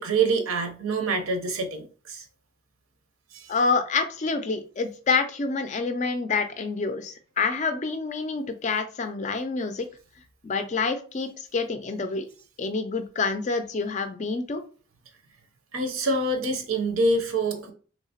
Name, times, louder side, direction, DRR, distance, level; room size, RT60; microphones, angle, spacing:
voice 1, 0.0-2.2 3.3-3.5 15.7-17.7, right 3 dB, 85° right, 5 dB, 0.7 m, -26 dB
voice 2, 3.5-9.9 10.4-12.3 12.6-14.6, left 4 dB, 35° left, 8 dB, 0.3 m, -27 dB
3.3 x 2.8 x 2.8 m, 0.39 s
head